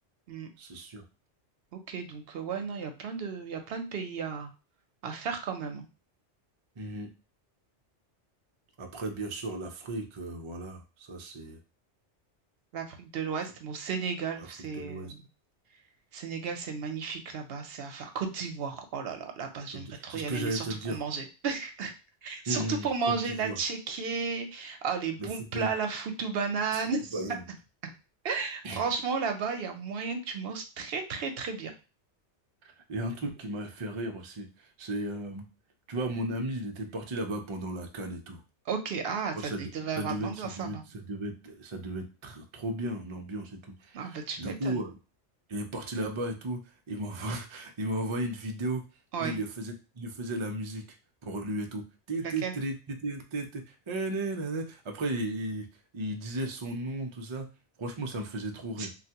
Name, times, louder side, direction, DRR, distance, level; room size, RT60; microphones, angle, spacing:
voice 1, 0.6-1.0 6.8-7.1 8.8-11.6 14.4-15.1 19.7-21.0 22.5-23.6 25.2-25.3 25.5-25.7 27.1-27.5 28.6-28.8 32.9-35.5 35.9-38.4 39.3-39.7 39.9-45.0 45.5-46.6 46.9-48.8 49.2-50.8 51.2-55.7 55.9-57.5 57.8-58.9, right 1 dB, 50° right, 4 dB, 0.3 m, -35 dB
voice 2, 1.7-4.5 5.0-5.8 12.7-15.2 16.1-21.9 22.2-27.2 28.2-31.7 38.7-40.8 43.9-44.8 49.1-49.4 52.2-52.5 58.8-58.9, right 5 dB, 65° right, 5 dB, 0.7 m, -34 dB
3.2 x 2.3 x 2.8 m, 0.31 s
omnidirectional pair, 1.2 m